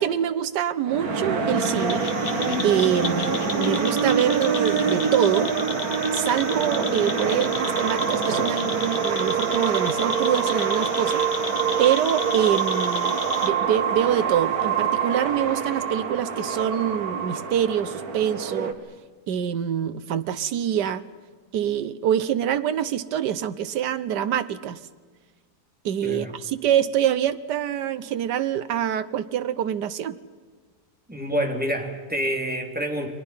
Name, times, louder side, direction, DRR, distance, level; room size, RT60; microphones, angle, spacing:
voice 1, 0.0-2.1 2.6-5.5 6.1-11.2 11.8-18.7 19.3-21.0 21.5-24.8 25.8-30.2, right 10 dB, 85° right, 12 dB, 1.5 m, -25 dB
sound 1, 0.9-18.7, right 5 dB, 60° right, 2.1 m, -25 dB
sound 2, 1.6-13.5, left 4 dB, 35° left, 1.3 m, -34 dB
voice 2, 31.1-33.1, equal, 5° right, 2 dB, 2.8 m, -27 dB
29.5 x 22.5 x 5.7 m, 1.5 s
omnidirectional pair, 1.8 m